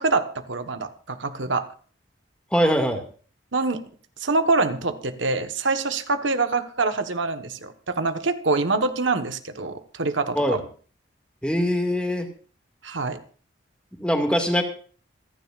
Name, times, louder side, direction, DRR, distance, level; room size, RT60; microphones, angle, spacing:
voice 1, 0.0-1.6 3.5-3.8 4.2-10.6 12.8-13.2, right 3 dB, 80° right, 8 dB, 1.3 m, -25 dB
voice 2, 2.5-3.0 10.3-10.6 11.4-12.3 14.0-14.6, equal, 5° left, 4 dB, 2.1 m, -22 dB
26.5 x 10.5 x 2.5 m, 0.42 s
head